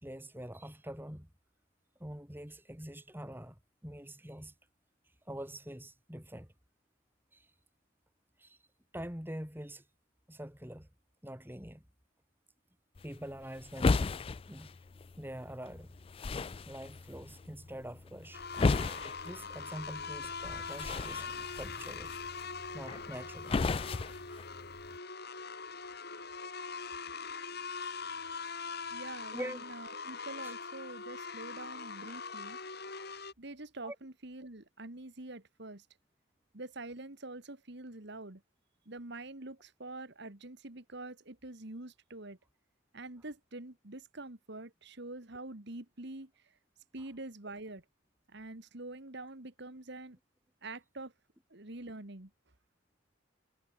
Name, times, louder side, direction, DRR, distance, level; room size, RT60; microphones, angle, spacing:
voice 1, 0.0-1.3 2.0-4.5 5.3-6.5 7.3-7.5 8.4-8.6 8.9-9.8 10.3-10.9 11.2-11.8 13.0-14.0 14.5-14.7 15.2-16.0 16.7-18.4 19.2-22.1 22.7-23.6 29.3-29.6 30.4-30.5 32.1-32.2 33.8-34.0, equal, 10° right, 4.3 m, -44 dB
sound 1, 13.0-25.0, left 3 dB, 25° left, 0.3 m, -36 dB
sound 2, 18.3-33.3, left 5 dB, 50° left, 4.1 m, -42 dB
voice 2, 28.9-32.6 33.4-35.9 36.5-38.4 38.9-42.4 42.9-46.5 46.9-47.8 48.3-50.2 50.6-51.1 51.5-52.3, right 2 dB, 55° right, 1.9 m, -46 dB
head